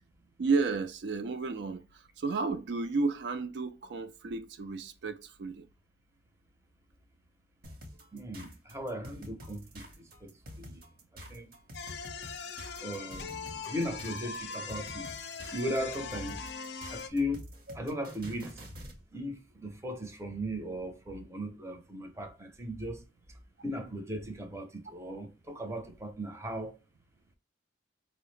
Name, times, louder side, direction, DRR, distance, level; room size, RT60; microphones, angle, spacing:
voice 1, 0.4-1.8 2.2-5.7, right 4 dB, 70° right, 0.4 m, -32 dB
sound 1, 7.6-19.0, equal, 55° right, 0.8 m, -48 dB
voice 2, 8.1-10.3 10.6-10.8 11.3-11.5 12.8-15.1 15.5-16.4 16.9-17.4 17.7-18.7 19.1-23.0 23.6-26.8, equal, 15° right, 0.6 m, -37 dB
sound 2, 11.7-17.1, left 5 dB, 65° left, 0.4 m, -41 dB
4.6 x 2.0 x 3.1 m
head